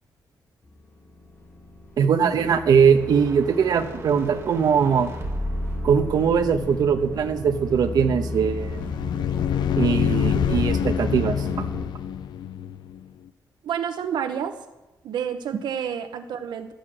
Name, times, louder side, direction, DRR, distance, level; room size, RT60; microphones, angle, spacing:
sound 1, 0.7-11.9, left 2 dB, 25° left, 2.0 m, -34 dB
voice 1, 2.0-5.1 5.8-8.8 9.8-11.7, right 7 dB, 60° right, 6 dB, 1.1 m, -21 dB
sound 2, 2.9-8.1, right 1 dB, 35° right, 2.0 m, -36 dB
sound 3, 8.4-13.0, left 9 dB, 75° left, 0.5 m, -26 dB
voice 2, 13.6-14.6 15.0-16.7, right 8 dB, 85° right, 7 dB, 0.9 m, -29 dB
13.0 x 8.4 x 7.8 m, 1.0 s
wide cardioid pair, 145°, 7 cm